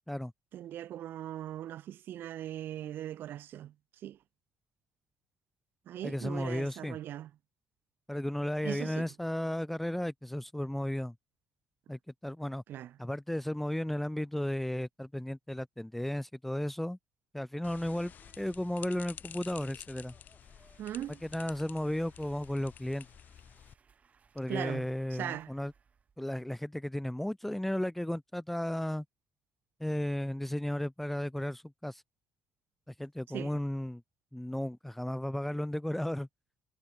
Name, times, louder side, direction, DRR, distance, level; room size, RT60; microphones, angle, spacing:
voice 1, 0.5-3.7 4.0-4.2 5.9-7.3 8.6-9.1 12.7-13.0 20.8-21.2 24.5-25.5 33.3-33.6, right 12 dB, 65° right, 1.2 m, -40 dB
voice 2, 6.0-7.0 8.1-11.1 11.9-12.6 13.0-17.0 17.3-20.1 21.2-23.1 24.3-25.7 26.2-29.0 29.8-32.0 33.0-34.0 34.3-36.3, left 1 dB, 5° left, 0.5 m, -34 dB
sound 1, 17.6-23.7, left 9 dB, 50° left, 0.8 m, -51 dB
sound 2, 17.8-22.4, right 3 dB, 20° right, 3.0 m, -66 dB
sound 3, 20.4-26.4, right 6 dB, 35° right, 4.6 m, -67 dB
cardioid pair, 105°, 4 cm